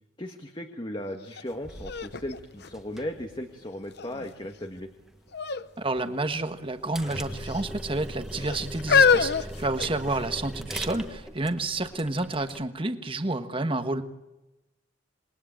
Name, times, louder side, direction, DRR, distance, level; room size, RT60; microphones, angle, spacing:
voice 1, 0.2-4.9, left 1 dB, 25° left, 5 dB, 1.6 m, -36 dB
sound 1, 1.3-1.4 1.9-3.4 4.0-4.5 5.3-5.7 6.0-6.1 7.0-7.6 8.3-10.4 11.1-11.2, left 5 dB, 55° left, 0.9 m, -25 dB
sound 2, 1.5-12.6, equal, ahead, 1.5 m, -41 dB
voice 2, 5.8-14.0, right 2 dB, 25° right, 9 dB, 1.3 m, -30 dB
27.0 x 22.5 x 8.9 m, 1.0 s
head